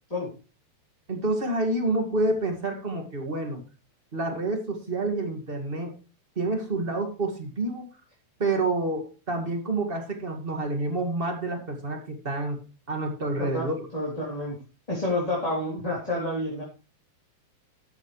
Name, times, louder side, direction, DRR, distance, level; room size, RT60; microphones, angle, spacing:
voice 1, 1.1-3.6 4.1-5.9 6.3-7.9 8.4-12.6 12.9-13.9, right 2 dB, 25° right, 3 dB, 1.2 m, -28 dB
voice 2, 13.9-14.6 14.9-16.6, left 1 dB, 10° left, -5 dB, 3.1 m, -29 dB
13.0 x 10.0 x 3.2 m, 0.32 s
omnidirectional pair, 4.6 m